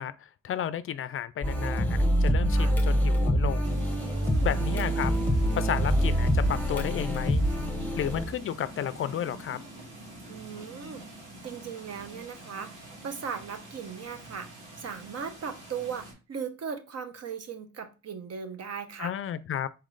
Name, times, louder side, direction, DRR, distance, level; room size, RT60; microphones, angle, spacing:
voice 1, 0.0-3.8 4.4-5.1 5.6-7.4 8.0-9.6 19.0-19.7, left 10 dB, 45° left, 0.4 m, -32 dB
sound 1, 1.4-8.3, equal, 5° left, 1.1 m, -25 dB
sound 2, 3.6-16.1, right 1 dB, 80° right, 2.0 m, -45 dB
voice 2, 4.0-4.6 10.3-11.0 11.4-19.1, right 6 dB, 55° right, 0.9 m, -38 dB
4.4 x 3.1 x 3.8 m
cardioid pair, 90°, 30 cm